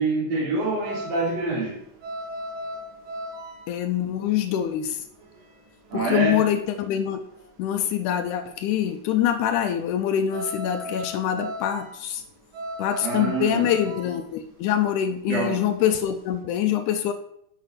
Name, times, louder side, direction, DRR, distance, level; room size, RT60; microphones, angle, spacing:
voice 1, 0.0-1.8 5.9-6.4 13.0-13.7 15.3-15.6, right 3 dB, 60° right, 2.0 m, -26 dB
sound 1, 0.6-7.7 8.0-16.4, equal, 80° right, 3.1 m, -38 dB
voice 2, 3.7-5.0 5.9-7.2 7.6-12.2 12.8-17.1, left 10 dB, 80° left, 1.9 m, -25 dB
7.5 x 5.5 x 5.1 m
omnidirectional pair, 3.8 m